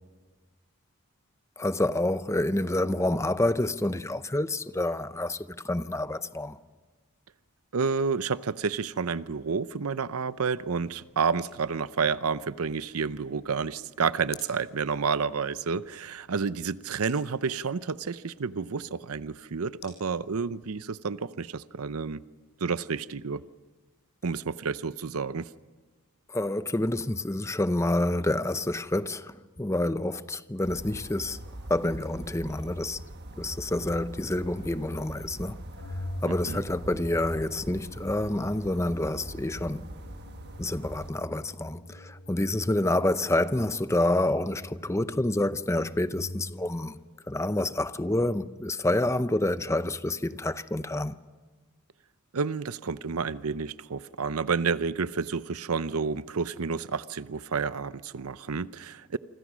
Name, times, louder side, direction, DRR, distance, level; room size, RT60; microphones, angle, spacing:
voice 1, 1.6-6.6 26.3-31.4 31.7-33.0 33.4-35.6 36.2-39.9 40.6-47.0 47.3-51.2, left 1 dB, 15° left, 0.7 m, -28 dB
voice 2, 7.7-22.2 22.6-23.4 24.2-25.5 36.4-36.6 52.3-59.2, right 5 dB, 80° right, 0.7 m, -30 dB
sound 1, 8.4-20.8, left 7 dB, 50° left, 6.2 m, -56 dB
sound 2, 30.6-41.1, right 1 dB, 50° right, 1.3 m, -42 dB
Organ, 35.7-46.8, equal, 85° left, 2.5 m, -45 dB
28.0 x 25.5 x 6.2 m
head